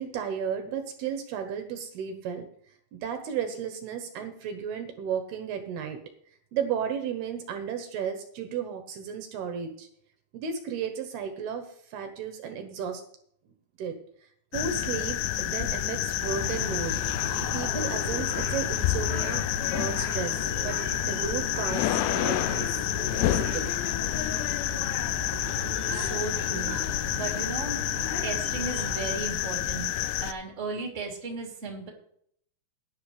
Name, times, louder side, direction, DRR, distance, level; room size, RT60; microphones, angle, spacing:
voice 1, 0.0-2.5 2.9-6.0 6.5-9.9 10.3-13.0 13.5-14.0 14.5-17.0 17.5-19.5 19.7-20.8 21.1-22.7 23.3-23.7, right 7 dB, 70° right, 6 dB, 2.8 m, -34 dB
sound 1, 14.5-30.3, left 14 dB, 85° left, 2.3 m, -29 dB
sound 2, 16.2-29.2, right 1 dB, 10° left, 4.0 m, -38 dB
voice 2, 25.9-26.8 27.1-27.8 28.2-29.9 30.2-31.9, right 4 dB, 20° right, 0 dB, 2.6 m, -35 dB
17.0 x 10.5 x 3.4 m, 0.66 s
omnidirectional pair, 5.4 m